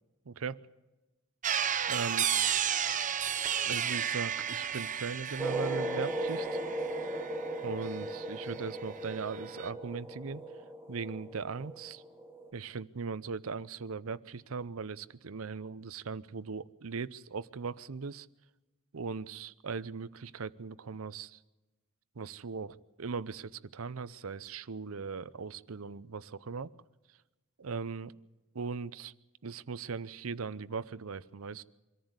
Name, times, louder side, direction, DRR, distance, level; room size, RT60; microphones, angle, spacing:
voice 1, 0.3-0.6 1.9-2.3 3.6-6.5 7.6-10.4 10.9-12.0 12.5-18.3 18.9-21.4 22.2-26.7 27.6-28.1 28.5-29.1 29.4-31.6, right 5 dB, 70° right, 17 dB, 0.7 m, -39 dB
sound 1, 1.4-8.6 8.9-9.7, right 9 dB, 35° right, 0.8 m, -33 dB
sound 2, 5.4-12.5, right 1 dB, 10° right, 1.3 m, -37 dB
24.0 x 14.5 x 8.0 m, 1.1 s
head